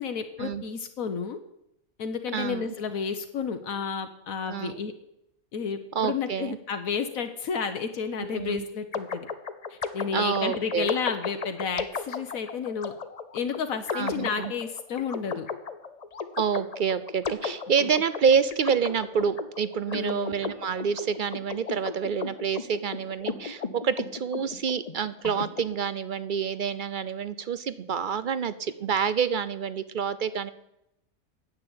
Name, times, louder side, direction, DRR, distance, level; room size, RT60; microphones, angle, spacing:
voice 1, 0.0-1.4 2.0-4.9 5.5-9.3 9.7-12.9 13.3-15.5 17.8-17.9 19.9-20.3, left 6 dB, 75° left, 7 dB, 1.3 m, -31 dB
voice 2, 2.3-2.7 4.5-4.8 5.9-6.6 8.2-8.6 10.1-10.9 13.9-14.5 16.4-30.5, right 7 dB, 60° right, 14 dB, 0.5 m, -28 dB
sound 1, 8.9-25.6, left 5 dB, 40° left, 0.6 m, -35 dB
9.8 x 8.5 x 8.7 m, 0.81 s
omnidirectional pair, 1.5 m